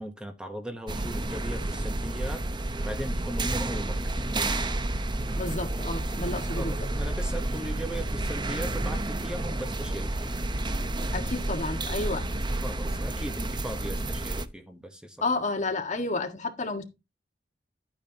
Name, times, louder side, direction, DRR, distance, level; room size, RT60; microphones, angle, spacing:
voice 1, 0.0-4.7 6.5-10.3 12.5-15.2, equal, 5° right, 1.0 m, -38 dB
sound 1, 0.9-14.5, right 2 dB, 25° right, 0.7 m, -30 dB
voice 2, 5.4-6.7 11.1-12.2 15.2-16.8, left 3 dB, 45° left, 1.7 m, -31 dB
12.0 x 8.8 x 2.9 m
head